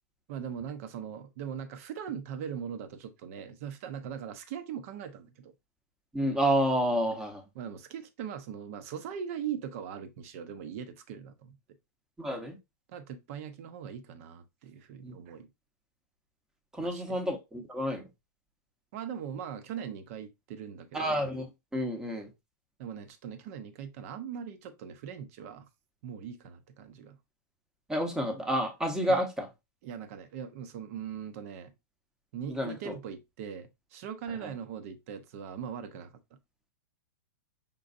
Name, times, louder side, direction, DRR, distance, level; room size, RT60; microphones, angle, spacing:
voice 1, 0.3-5.5 7.5-11.6 12.9-15.5 16.8-17.2 18.9-21.1 22.8-25.7 26.0-27.2 29.1-29.2 29.8-31.7 32.3-36.1, right 8 dB, 45° right, 0.7 m, -40 dB
voice 2, 6.1-7.4 12.2-12.6 15.0-15.1 16.7-18.0 20.9-21.5 21.7-22.3 27.9-29.5 32.5-33.0 34.4-34.5, equal, 5° right, 0.9 m, -29 dB
5.3 x 3.8 x 2.6 m
supercardioid pair, 155°, 10 cm